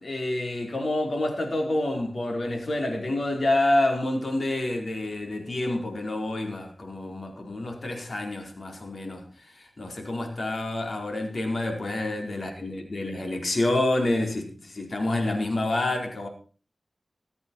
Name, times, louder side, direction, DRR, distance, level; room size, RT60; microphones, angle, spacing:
voice 1, 0.0-16.3, left 1 dB, 65° left, 2 dB, 4.8 m, -28 dB
22.0 x 8.5 x 4.7 m, 0.39 s
cardioid pair, 50°, 0 cm